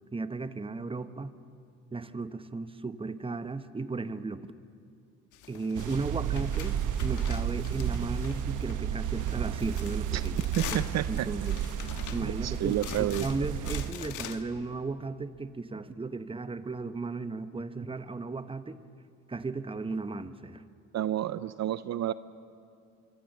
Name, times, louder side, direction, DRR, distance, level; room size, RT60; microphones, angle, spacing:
voice 1, 0.1-1.3 1.9-4.5 5.5-10.4 11.1-11.6 12.1-18.8 19.3-20.6, right 3 dB, 20° right, 11 dB, 1.0 m, -35 dB
sound 1, 5.3-8.9 9.2-14.4, left 10 dB, 80° left, 1.4 m, -44 dB
sound 2, 5.7-13.9, right 9 dB, 85° right, 1.1 m, -32 dB
voice 2, 10.6-11.3 12.2-13.3 20.9-22.1, right 12 dB, 60° right, 15 dB, 0.6 m, -30 dB
26.5 x 24.0 x 6.7 m, 2.4 s
cardioid pair, 90°, 30 cm